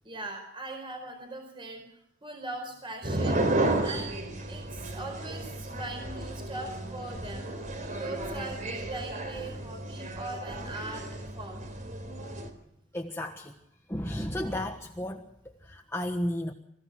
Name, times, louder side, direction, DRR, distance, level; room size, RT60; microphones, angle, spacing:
voice 1, 0.0-1.8 2.2-3.4 3.8-7.5 8.0-11.1 11.4-11.7, right 2 dB, 25° right, 4 dB, 4.5 m, -40 dB
sound 1, 3.0-12.5, right 2 dB, 40° right, 3.7 m, -33 dB
voice 2, 12.9-13.5 13.9-15.2 15.6-16.5, left 1 dB, 15° left, 2 dB, 1.4 m, -33 dB
27.0 x 16.0 x 6.3 m, 0.80 s
head